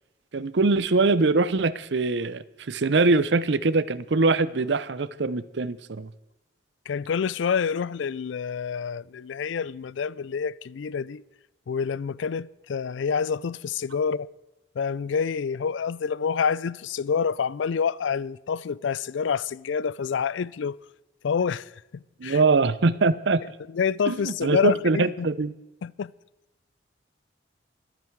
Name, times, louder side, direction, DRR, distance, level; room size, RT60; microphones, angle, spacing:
voice 1, 0.3-6.1 22.2-23.4 24.1-25.5, right 3 dB, 75° right, 0.6 m, -23 dB
voice 2, 6.9-11.2 11.7-14.3 14.8-20.8 21.2-21.7 22.2-22.4 23.7-25.3 25.8-26.1, left 6 dB, 85° left, 0.4 m, -27 dB
24.0 x 9.1 x 4.6 m
head